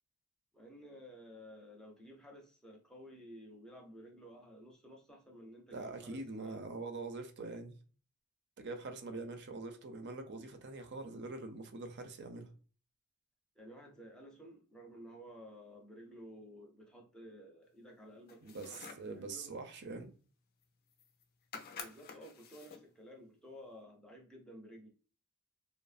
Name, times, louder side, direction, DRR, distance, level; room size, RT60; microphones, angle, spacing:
voice 1, 0.5-6.6 13.6-18.8 19.1-19.5 21.8-24.9, equal, 5° left, 0.6 m, -53 dB
voice 2, 5.7-7.8 8.6-12.5 18.4-20.1, right 3 dB, 55° right, 0.5 m, -44 dB
sound 1, 18.3-19.1 20.6-20.7 20.9-21.2 21.5-22.9, left 5 dB, 45° left, 0.5 m, -49 dB
3.1 x 2.0 x 2.4 m
head